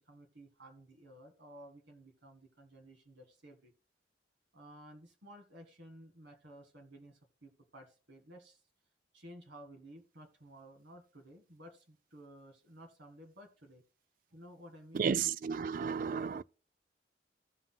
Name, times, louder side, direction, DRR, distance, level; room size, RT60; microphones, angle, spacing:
voice 1, 0.0-3.7 4.5-8.6 9.1-13.8 14.3-15.2, right 1 dB, 80° right, 1.9 m, -55 dB
voice 2, 14.9-16.4, right 6 dB, 50° right, 0.3 m, -33 dB
16.5 x 5.8 x 2.2 m
head